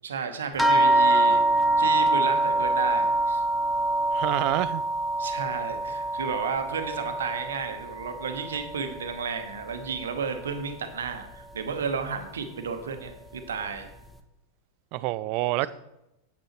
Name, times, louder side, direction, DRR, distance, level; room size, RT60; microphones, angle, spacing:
voice 1, 0.0-3.4 5.2-13.9, right 5 dB, 65° right, 1.0 m, -32 dB
sound 1, 0.6-9.4 9.7-10.6 11.4-11.5 11.9-12.0, right 2 dB, 5° left, 0.6 m, -25 dB
voice 2, 4.1-4.8 14.9-15.7, right 17 dB, 45° right, 0.3 m, -27 dB
8.9 x 8.1 x 3.0 m
figure-of-eight pair, 90°, 0 cm